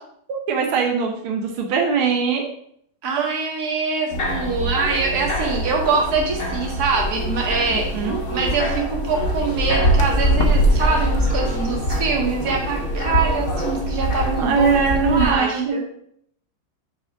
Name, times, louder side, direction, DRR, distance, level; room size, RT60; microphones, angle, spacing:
voice 1, 0.3-2.5 7.7-8.2 14.4-16.0, right 5 dB, 85° right, 2 dB, 1.8 m, -21 dB
voice 2, 3.0-14.7 15.0-15.8, right 4 dB, 50° right, 0 dB, 2.1 m, -24 dB
sound 1, 4.1-15.3, equal, 45° left, 1.6 m, -23 dB
7.1 x 4.4 x 5.8 m, 0.67 s
omnidirectional pair, 2.3 m